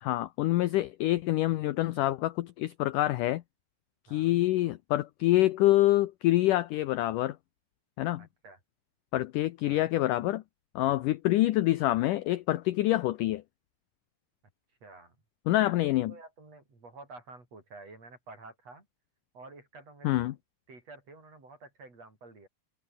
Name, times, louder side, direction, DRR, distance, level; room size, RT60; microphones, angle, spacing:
voice 1, 0.0-3.4 4.1-7.4 8.0-8.3 9.1-10.4 10.8-13.4 15.5-16.1 20.0-20.3, left 16 dB, 80° left, 1.9 m, -26 dB
voice 2, 4.1-4.4 8.2-8.6 9.6-9.9 10.8-11.1 14.8-15.2 15.7-18.9 19.3-20.4 20.7-22.5, right 3 dB, 40° right, 8.1 m, -50 dB
omnidirectional pair, 4.7 m